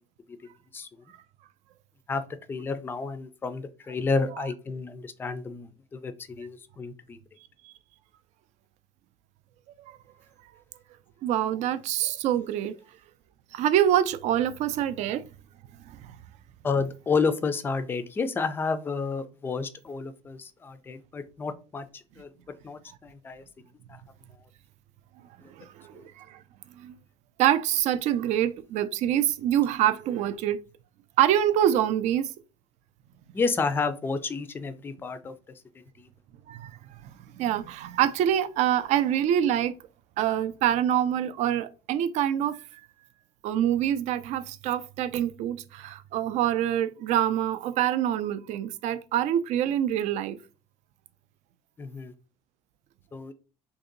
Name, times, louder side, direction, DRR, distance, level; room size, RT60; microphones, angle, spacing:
voice 1, 2.1-7.2 16.6-22.3 22.6-23.4 23.9-24.0 24.3-24.4 25.4-25.5 25.9-26.1 33.3-35.3 36.0-36.1 51.8-52.1 53.1-53.3, left 4 dB, 20° left, 0.3 m, -31 dB
voice 2, 11.2-12.7 13.5-15.3 15.9-16.0 25.6-26.4 26.8-26.9 27.4-30.6 31.2-32.3 36.5-36.7 37.4-39.7 40.2-42.6 43.4-50.4, right 11 dB, 70° right, 0.4 m, -25 dB
2.8 x 2.7 x 3.8 m
cardioid pair, 145°, 12 cm